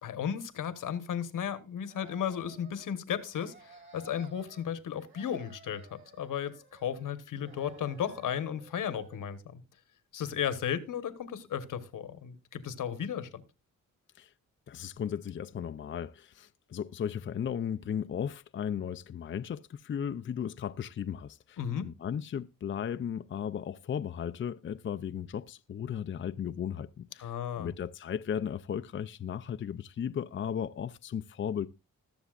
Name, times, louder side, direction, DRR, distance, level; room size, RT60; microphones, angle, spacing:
voice 1, 0.0-9.6 10.1-13.4 21.6-21.9 27.2-27.7, left 8 dB, 75° left, 1.2 m, -35 dB
sound 1, 1.8-2.9 3.3-4.7 5.0-7.1 7.4-9.4, right 5 dB, 35° right, 2.8 m, -55 dB
voice 2, 14.7-27.3 27.6-31.7, left 8 dB, 40° left, 0.5 m, -36 dB
20.5 x 7.0 x 2.4 m
cardioid pair, 90°, 32 cm